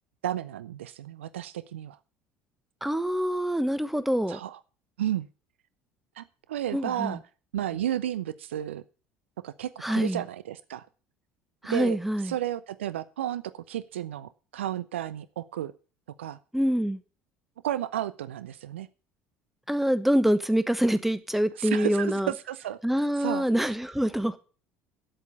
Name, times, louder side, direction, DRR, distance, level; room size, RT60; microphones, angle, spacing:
voice 1, 0.2-2.0 4.3-4.6 5.0-5.3 6.2-7.2 7.5-8.8 9.4-10.9 11.7-12.0 12.2-15.7 16.2-16.4 17.6-18.9 21.6-22.8 23.2-23.5, right 12 dB, 75° right, 16 dB, 0.5 m, -32 dB
voice 2, 2.8-4.4 6.7-7.2 9.8-10.2 11.6-12.3 16.5-17.0 19.7-22.3 22.8-24.4, equal, 5° right, 13 dB, 1.1 m, -25 dB
9.0 x 8.3 x 8.3 m, 0.36 s
figure-of-eight pair, 60°, 7 cm